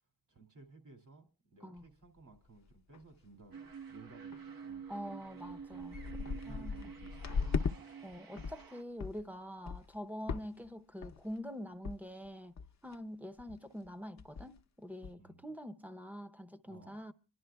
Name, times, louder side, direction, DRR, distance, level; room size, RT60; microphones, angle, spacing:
voice 1, 0.3-3.6 3.9-4.9 5.7-6.0 6.2-7.7 15.2-15.4 16.7-17.0, right 3 dB, 60° right, 2.4 m, -58 dB
sound 1, 1.8-1.9 2.4-2.5 2.7-3.1 3.4-3.7 4.3-4.4 5.0-5.1 5.4-7.8 8.1-8.6 9.0-9.2 9.6-10.0 10.3-10.7 11.0-11.4 11.8-12.0 12.2-12.3 12.6-12.9 13.4-13.6 13.8-13.9 14.2-14.6 15.0-15.1, left 5 dB, 55° left, 0.6 m, -38 dB
sound 2, 3.5-8.8, right 6 dB, 90° right, 1.2 m, -48 dB
voice 2, 4.9-6.9 8.0-12.5 12.8-17.1, equal, 5° right, 0.6 m, -45 dB
27.0 x 11.0 x 2.3 m
wide cardioid pair, 125°, 34 cm